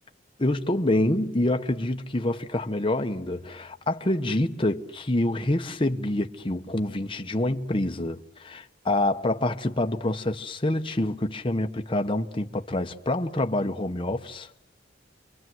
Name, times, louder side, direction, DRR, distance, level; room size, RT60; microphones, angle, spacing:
voice 1, 0.4-14.5, left 1 dB, 30° left, 1.0 m, -27 dB
29.5 x 24.0 x 7.8 m
head